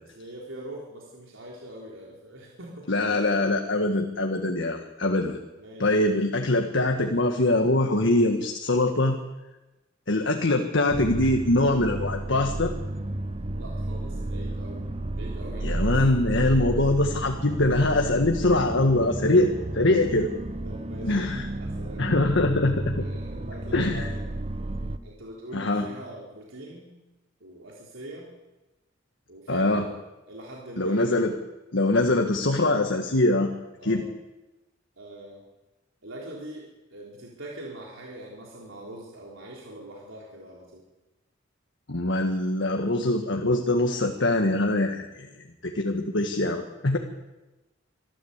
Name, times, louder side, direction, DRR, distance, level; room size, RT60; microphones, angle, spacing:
voice 1, 0.2-2.9 5.6-5.9 13.5-16.0 17.8-17.9 20.6-22.3 23.0-24.3 25.0-27.0 27.4-28.3 29.3-29.9 30.3-31.2 33.8-34.1 35.0-35.4 36.0-40.9, right 1 dB, 85° right, -3 dB, 3.8 m, -43 dB
voice 2, 2.9-5.4 5.8-9.2 10.1-12.7 15.6-20.3 21.0-21.5 22.0-23.0 23.7-24.1 25.5-25.9 29.5-29.9 30.8-31.4 31.7-33.5 33.8-34.0 41.9-45.3 45.6-47.0, left 2 dB, 65° left, 3 dB, 1.7 m, -23 dB
sound 1, 10.9-25.0, right 1 dB, 30° right, 0.9 m, -32 dB
25.0 x 13.5 x 8.2 m, 1.1 s
head